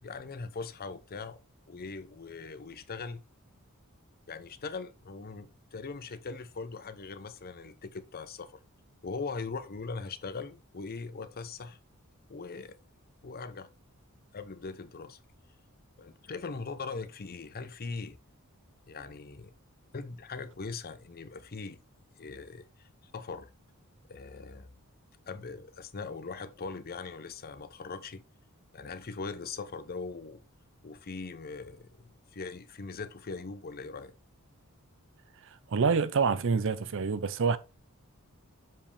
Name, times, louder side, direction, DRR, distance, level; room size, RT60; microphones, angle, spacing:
voice 1, 0.0-1.4 1.7-3.2 4.3-8.6 9.0-11.8 12.3-12.8 13.2-13.7 14.3-15.2 16.0-18.2 18.9-19.5 19.9-21.8 22.2-22.9 23.1-23.5 24.1-24.7 25.3-28.2 28.7-30.4 30.8-34.1, left 4 dB, 45° left, 0.6 m, -40 dB
voice 2, 35.7-37.6, right 5 dB, 60° right, 0.6 m, -26 dB
7.5 x 5.2 x 3.3 m
head